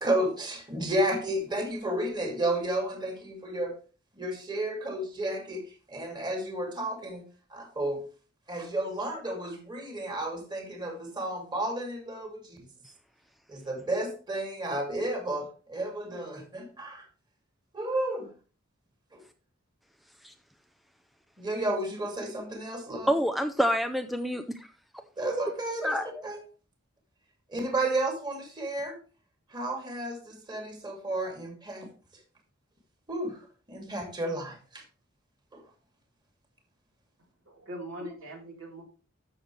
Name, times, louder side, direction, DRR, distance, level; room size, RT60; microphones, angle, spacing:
voice 1, 0.0-3.7 4.2-5.6 5.9-7.2 7.5-8.0 8.5-12.6 13.5-17.0 17.7-18.3 19.1-19.2 21.4-23.1 25.2-26.0 26.2-26.4 27.5-29.0 29.5-31.9 33.1-33.4 33.7-34.8 35.5-35.6, right 1 dB, 20° right, 2 dB, 2.5 m, -32 dB
voice 2, 23.1-24.7 25.8-26.2, equal, ahead, 7 dB, 0.5 m, -27 dB
voice 3, 37.5-38.8, right 1 dB, 70° right, 0 dB, 3.9 m, -41 dB
13.5 x 6.5 x 3.2 m, 0.36 s
head